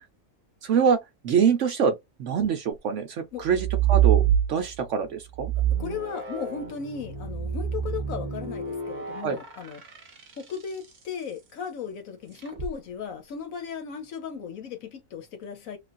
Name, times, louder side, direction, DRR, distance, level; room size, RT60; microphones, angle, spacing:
voice 1, 0.6-1.0 1.2-1.9 2.2-4.2 4.5-5.5 9.2-9.4, right 7 dB, 60° right, 0.8 m, -24 dB
sound 1, 3.4-4.9 5.3-10.8 12.4-12.7, right 10 dB, 35° right, 0.9 m, -26 dB
voice 2, 5.8-9.8 10.4-15.8, left 7 dB, 65° left, 1.0 m, -36 dB
3.4 x 2.4 x 2.4 m
omnidirectional pair, 1.6 m